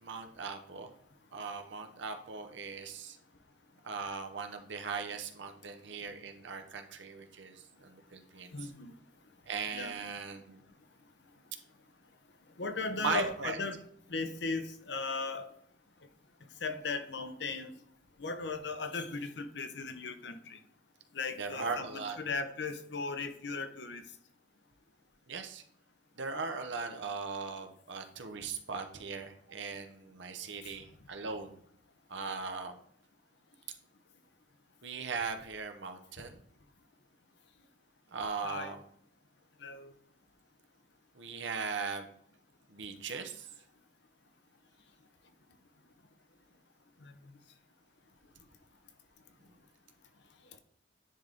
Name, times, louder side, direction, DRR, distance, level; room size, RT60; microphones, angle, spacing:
voice 1, 0.0-0.9 1.3-3.2 3.8-8.5 9.5-10.6 13.0-13.6 21.4-22.2 25.3-25.6 26.2-31.6 32.1-32.8 34.8-36.4 38.1-38.8 41.2-42.1 42.7-43.5, right 4 dB, 70° right, 6 dB, 0.9 m, -39 dB
voice 2, 8.5-8.9 9.7-9.9 12.6-13.8 14.1-15.5 16.6-17.7 18.2-20.6 21.1-24.0 30.6-30.7 38.4-38.7 39.6-39.9 47.0-47.1, left 4 dB, 65° left, 8 dB, 0.8 m, -37 dB
9.9 x 3.5 x 3.9 m, 0.63 s
head